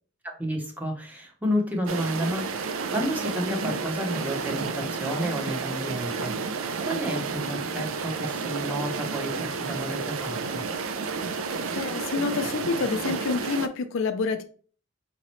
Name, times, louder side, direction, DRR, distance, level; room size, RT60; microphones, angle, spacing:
voice 1, 0.2-10.7, equal, 10° right, 0.9 m, -31 dB
sound 1, 1.9-13.7, right 4 dB, 70° right, 0.5 m, -31 dB
voice 2, 11.8-14.4, left 4 dB, 65° left, 0.5 m, -28 dB
5.1 x 2.8 x 3.1 m
head